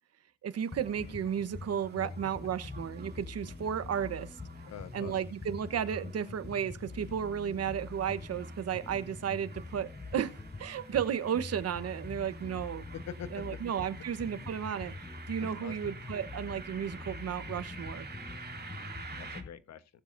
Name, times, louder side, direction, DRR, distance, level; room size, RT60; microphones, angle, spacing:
voice 1, 0.4-4.4 4.9-12.8 13.3-14.9 15.3-18.1, right 8 dB, 55° right, 1.1 m, -34 dB
sound 1, 0.5-19.4, right 4 dB, 35° right, 2.8 m, -50 dB
sound 2, 0.7-19.5, left 3 dB, 15° left, 0.6 m, -45 dB
voice 2, 4.6-5.1 12.9-13.6 15.6-15.8 18.7-18.9 19.2-19.8, left 8 dB, 60° left, 1.3 m, -44 dB
19.0 x 7.5 x 2.7 m
cardioid pair, 90°, 30 cm